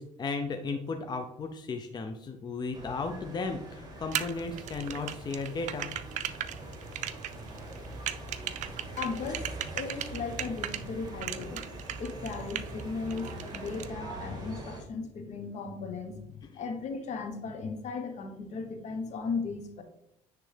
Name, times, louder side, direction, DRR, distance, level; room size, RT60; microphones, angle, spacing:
voice 1, 0.0-5.9, left 4 dB, 30° left, 5 dB, 0.6 m, -35 dB
sound 1, 2.7-14.8, right 2 dB, 30° right, 2.0 m, -43 dB
sound 2, 4.1-10.8 11.2-12.8 13.1-13.9, right 11 dB, 65° right, 0.4 m, -36 dB
voice 2, 9.0-11.6 12.0-19.8, left 4 dB, 60° left, 7 dB, 1.0 m, -36 dB
9.9 x 3.3 x 3.4 m, 0.79 s
cardioid pair, 95°, 14 cm